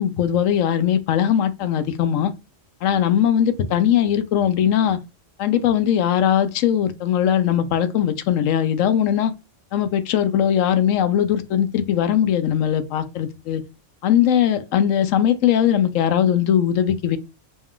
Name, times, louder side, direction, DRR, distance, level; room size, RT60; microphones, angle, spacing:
voice 1, 0.0-2.3 2.8-5.0 5.4-9.3 9.7-13.6 14.0-17.2, left 9 dB, 85° left, 1.0 m, -20 dB
4.1 x 2.3 x 3.6 m
omnidirectional pair, 1.3 m